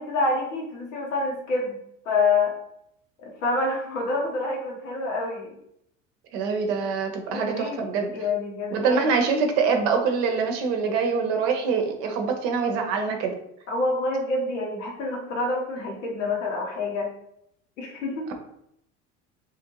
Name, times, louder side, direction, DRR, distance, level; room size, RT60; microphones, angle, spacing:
voice 1, 0.0-1.8 2.0-2.5 3.2-5.6 7.3-7.8 8.1-9.1 13.7-17.1 17.8-18.3, left 3 dB, 80° left, 0 dB, 1.0 m, -27 dB
voice 2, 6.3-8.1 8.7-13.4, right 5 dB, 65° right, 4 dB, 0.7 m, -24 dB
3.1 x 2.5 x 2.9 m, 0.75 s
hypercardioid pair, 75°, 38 cm